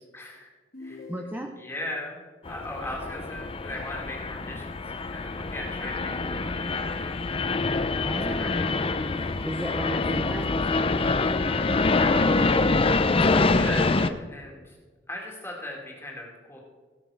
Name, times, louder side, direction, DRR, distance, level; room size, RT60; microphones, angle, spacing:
voice 1, 0.1-0.5 0.8-1.0 1.5-6.7 7.0-7.2 8.4-9.1 11.9-12.9 13.2-14.8 15.1-16.6, left 1 dB, 15° left, -2 dB, 2.0 m, -39 dB
sound 1, 0.7-1.8, left 3 dB, 60° left, 2.4 m, -44 dB
voice 2, 1.1-1.5 8.0-8.9 9.4-10.4, right 1 dB, 10° right, 3 dB, 0.7 m, -34 dB
sound 2, 2.5-14.1, left 3 dB, 30° left, 0.5 m, -25 dB
18.0 x 6.0 x 4.7 m, 1.4 s
head